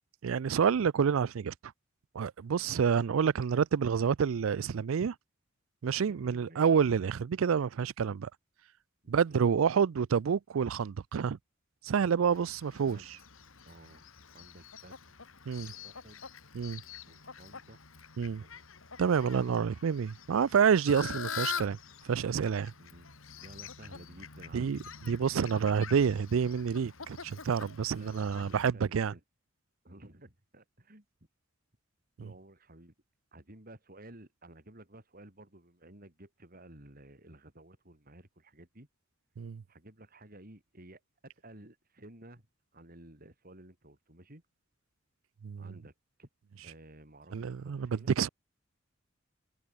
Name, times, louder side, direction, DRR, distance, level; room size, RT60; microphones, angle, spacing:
voice 1, 0.2-1.7 2.1-5.1 5.8-8.3 9.1-11.4 11.8-13.0 15.5-15.7 16.5-16.8 18.2-18.4 19.0-21.8 22.0-22.7 24.5-24.8 25.1-29.1 39.4-39.6 45.4-45.6 47.3-48.3, right 6 dB, 80° right, 0.4 m, -28 dB
voice 2, 6.0-6.6 9.0-9.4 12.7-13.1 13.6-14.0 14.3-15.0 15.6-16.2 17.0-17.8 18.2-18.7 22.7-25.0 27.9-29.2 29.8-31.0 32.2-32.9 33.3-38.9 39.7-42.5 42.7-44.4 45.6-45.9 46.2-46.3 46.6-47.4 47.6-48.1, right 1 dB, 45° right, 4.2 m, -54 dB
Fowl, 12.3-28.7, left 6 dB, 85° left, 2.4 m, -45 dB
head